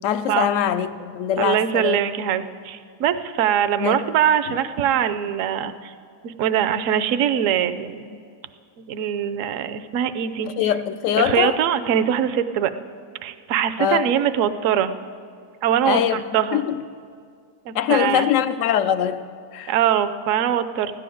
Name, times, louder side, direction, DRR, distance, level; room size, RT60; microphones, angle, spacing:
voice 1, 0.0-2.0 3.8-4.0 10.4-11.6 13.8-14.1 15.9-16.2 16.5-16.8 17.7-19.2 19.5-19.7, left 9 dB, 70° left, 0.8 m, -22 dB
voice 2, 1.4-5.9 6.2-8.2 8.8-10.7 11.2-12.7 13.2-14.9 15.6-16.6 17.7-18.3 19.7-21.0, right 9 dB, 65° right, 0.9 m, -22 dB
15.5 x 10.5 x 7.7 m
omnidirectional pair, 1.7 m